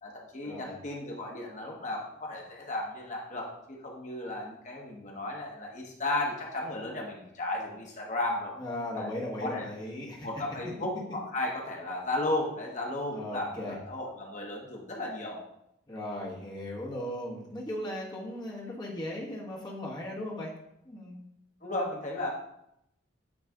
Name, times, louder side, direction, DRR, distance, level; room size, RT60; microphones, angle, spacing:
voice 1, 0.0-8.5 8.9-9.1 9.4-9.7 10.2-15.4 21.6-22.3, left 2 dB, 40° left, -1 dB, 1.1 m, -34 dB
voice 2, 8.6-10.3 13.1-13.8 15.9-20.5 20.8-21.2, left 1 dB, 25° left, -4 dB, 1.4 m, -37 dB
8.8 x 3.2 x 3.7 m, 0.80 s
head